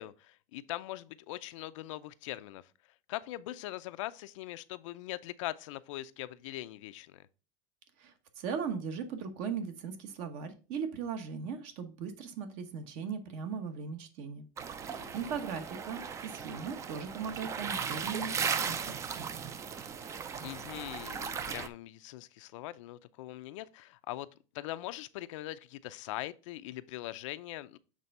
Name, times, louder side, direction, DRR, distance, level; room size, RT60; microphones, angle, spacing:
voice 1, 0.0-2.7 3.1-7.3 14.9-15.3 20.4-24.3 24.5-27.8, left 16 dB, 80° left, 0.5 m, -41 dB
voice 2, 8.0-14.5 14.7-19.2, right 6 dB, 50° right, 1.0 m, -38 dB
sound 1, 14.6-21.7, right 6 dB, 20° right, 0.4 m, -37 dB
7.4 x 3.4 x 5.4 m
supercardioid pair, 160°, 16 cm